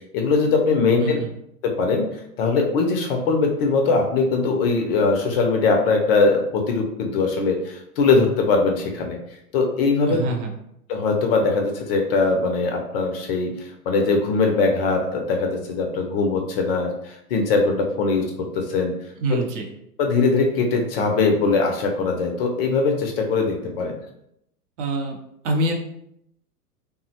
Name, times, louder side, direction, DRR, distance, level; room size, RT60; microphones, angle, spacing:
voice 1, 0.1-1.2 1.6-9.2 9.5-10.2 10.9-18.9 19.3-19.4 20.0-24.0, left 4 dB, 40° left, 2 dB, 0.5 m, -21 dB
voice 2, 10.1-10.5 19.2-19.7 24.8-25.2 25.4-25.7, right 1 dB, 50° right, 2 dB, 0.7 m, -25 dB
3.4 x 2.1 x 2.7 m, 0.76 s
hypercardioid pair, 120°, 46 cm